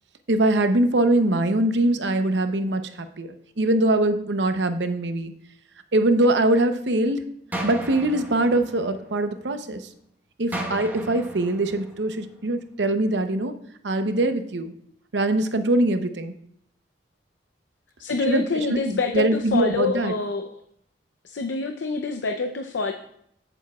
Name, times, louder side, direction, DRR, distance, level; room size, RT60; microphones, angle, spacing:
voice 1, 0.3-5.3 5.9-7.2 7.6-9.9 10.4-13.5 13.8-14.7 15.1-16.3 18.3-18.4 18.7-20.1, right 1 dB, 70° right, 8 dB, 0.8 m, -22 dB
sound 1, 7.5-9.6 10.5-12.6, right 1 dB, 10° right, 1.2 m, -36 dB
voice 2, 18.0-20.6 21.2-22.9, left 4 dB, 90° left, 6 dB, 0.6 m, -26 dB
15.5 x 7.0 x 2.3 m, 0.71 s
head